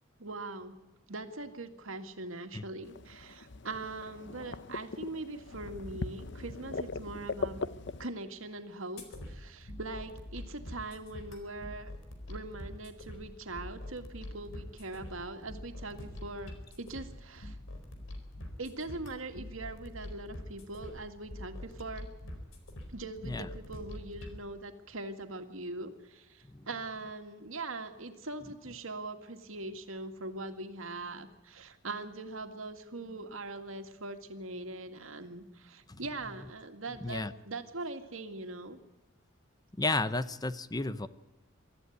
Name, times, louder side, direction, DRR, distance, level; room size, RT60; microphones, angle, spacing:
voice 1, 0.2-0.8 1.1-7.7 8.0-11.9 12.3-17.6 18.6-22.1 22.9-38.8, right 2 dB, 85° right, 6 dB, 2.2 m, -42 dB
sound 1, 2.8-8.1, left 3 dB, 60° left, 0.7 m, -40 dB
sound 2, 9.0-24.4, left 1 dB, 80° left, 4.2 m, -45 dB
voice 2, 37.0-37.3 39.8-41.1, left 2 dB, 20° left, 14 dB, 0.7 m, -32 dB
24.0 x 14.0 x 9.5 m, 1.1 s
head